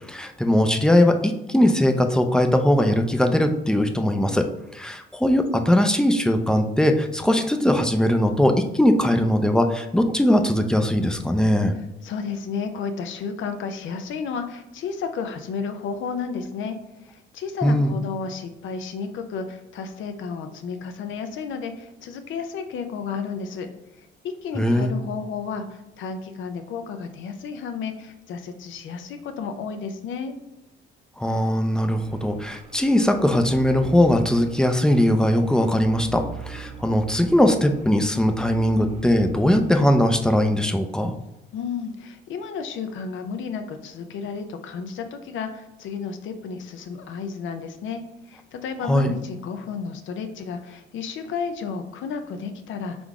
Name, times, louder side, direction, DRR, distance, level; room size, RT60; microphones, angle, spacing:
voice 1, 0.1-4.5 4.7-11.7 17.6-17.9 24.6-24.9 31.2-41.1 48.9-49.1, left 1 dB, 5° left, 6 dB, 0.5 m, -20 dB
voice 2, 12.0-16.8 17.1-23.7 24.2-30.4 41.5-48.0 48.3-53.0, left 5 dB, 75° left, 7 dB, 0.6 m, -32 dB
sound 1, 32.0-40.6, right 6 dB, 35° right, 0.8 m, -41 dB
3.8 x 3.4 x 3.6 m, 0.96 s
cardioid pair, 90°, 20 cm